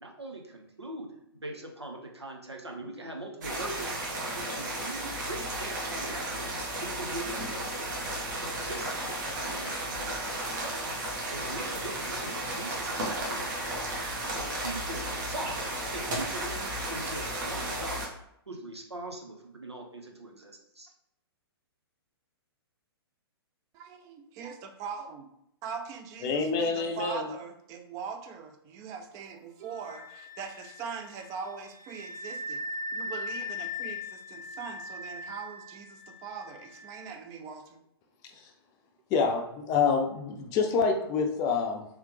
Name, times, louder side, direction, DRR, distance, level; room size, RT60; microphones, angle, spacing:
voice 1, 0.0-7.9 8.4-18.1 18.5-20.9, right 2 dB, 85° right, 1 dB, 0.9 m, -42 dB
sound 1, 3.4-18.1, right 1 dB, 45° right, 1.1 m, -34 dB
voice 2, 23.7-25.2 25.6-37.8, right 6 dB, 25° right, 5 dB, 0.5 m, -41 dB
voice 3, 26.2-27.3 39.1-41.9, left 5 dB, 25° left, 4 dB, 0.6 m, -27 dB
Wind instrument woodwind instrument, 29.6-37.1, left 2 dB, 10° left, 0.9 m, -40 dB
3.3 x 3.2 x 3.2 m, 0.76 s
figure-of-eight pair, 115°, 14 cm